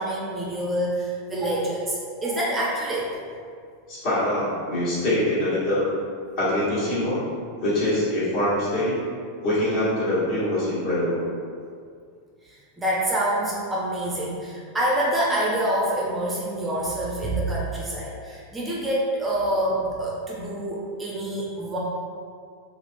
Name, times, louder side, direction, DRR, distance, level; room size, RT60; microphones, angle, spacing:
voice 1, 0.0-3.1 12.8-21.8, right 1 dB, 15° right, -5 dB, 0.5 m, -26 dB
voice 2, 3.9-5.9 6.4-7.2 7.6-8.9 9.4-11.2, left 1 dB, 45° left, -9 dB, 1.3 m, -24 dB
3.0 x 2.4 x 2.6 m, 2.2 s
supercardioid pair, 130°, 0 cm